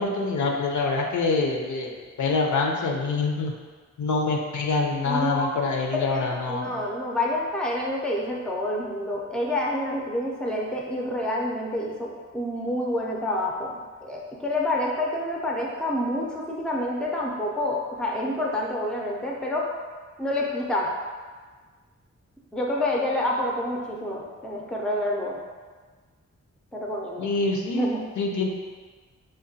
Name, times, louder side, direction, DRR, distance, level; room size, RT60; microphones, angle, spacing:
voice 1, 0.0-3.5 4.0-6.7 27.2-27.9 28.2-28.5, left 3 dB, 85° left, 1 dB, 0.5 m, -25 dB
voice 2, 5.1-5.6 5.9-19.6 20.2-20.9 22.5-25.4 26.7-27.3 27.8-28.0, left 1 dB, 5° left, -2 dB, 0.4 m, -28 dB
5.0 x 2.1 x 2.7 m, 1.5 s
wide cardioid pair, 130°, 29 cm